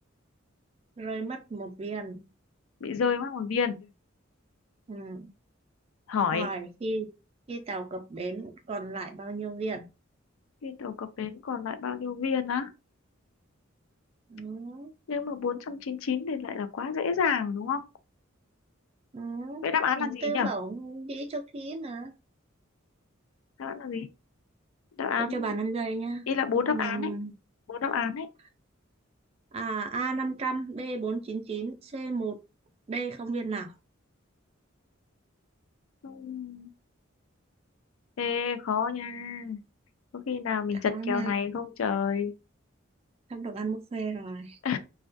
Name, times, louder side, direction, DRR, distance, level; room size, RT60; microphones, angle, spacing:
voice 1, 1.0-2.3 4.9-5.3 6.3-7.1 7.5-9.9 14.3-14.9 19.1-19.7 20.0-22.1 25.2-26.3 26.6-27.3 29.5-32.4 32.9-33.7 40.7-41.7 43.3-44.8, right 3 dB, 30° right, 0.3 m, -34 dB
voice 2, 2.8-3.9 6.1-6.5 10.6-12.7 15.1-17.8 19.6-20.5 23.6-24.1 25.0-25.5 26.3-27.1 27.7-28.3 36.0-36.7 38.2-39.6 40.1-42.3 44.6-44.8, left 6 dB, 80° left, 0.4 m, -29 dB
2.2 x 2.2 x 2.5 m
head